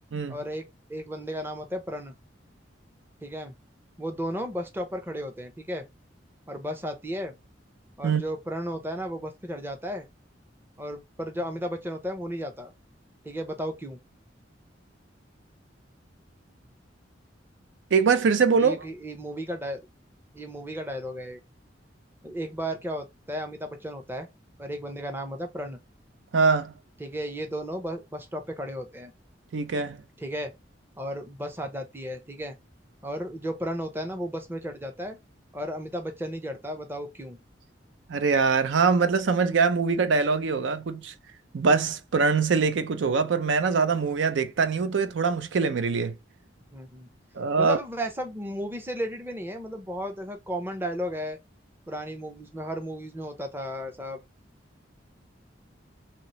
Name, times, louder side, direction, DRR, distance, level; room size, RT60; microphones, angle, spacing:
voice 1, 0.3-2.1 3.2-3.5 4.0-5.8 6.5-7.3 8.0-10.1 10.8-12.7 13.2-14.0 18.6-19.9 20.3-21.4 22.2-24.3 24.6-25.8 27.0-29.1 30.2-30.5 31.0-32.5 33.0-35.2 35.5-37.4 46.7-47.1 47.6-51.4 51.9-54.2, equal, 10° right, 0.6 m, -34 dB
voice 2, 17.9-18.8 26.3-26.7 29.5-30.0 38.1-41.1 41.5-46.1 47.4-47.8, right 5 dB, 85° right, 0.5 m, -23 dB
2.9 x 2.8 x 3.0 m
head